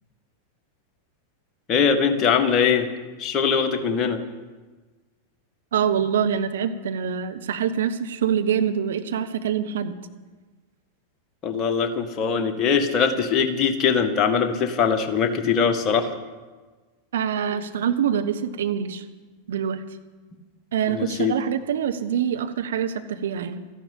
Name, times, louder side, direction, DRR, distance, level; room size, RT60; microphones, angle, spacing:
voice 1, 1.7-2.9 3.2-4.2 11.4-16.1 20.9-21.4, left 6 dB, 30° left, 6 dB, 1.8 m, -22 dB
voice 2, 5.7-10.0 17.1-19.0 19.5-19.8 20.7-23.6, right 8 dB, 60° right, 8 dB, 1.1 m, -25 dB
14.0 x 11.0 x 8.8 m, 1.3 s
figure-of-eight pair, 90°, 0 cm